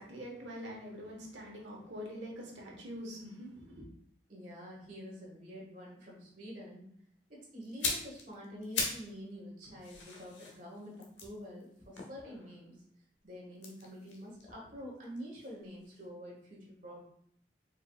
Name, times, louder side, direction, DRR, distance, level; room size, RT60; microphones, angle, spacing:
voice 1, 0.0-3.8, equal, 90° right, -2 dB, 1.4 m, -44 dB
voice 2, 4.3-6.9 7.3-12.8 13.2-17.0, equal, 45° right, -4 dB, 1.7 m, -47 dB
sound 1, 7.6-9.1 9.4-12.7 13.5-15.6 15.8-16.0, left 4 dB, 90° left, 1.0 m, -40 dB
4.8 x 4.6 x 2.4 m, 0.64 s
head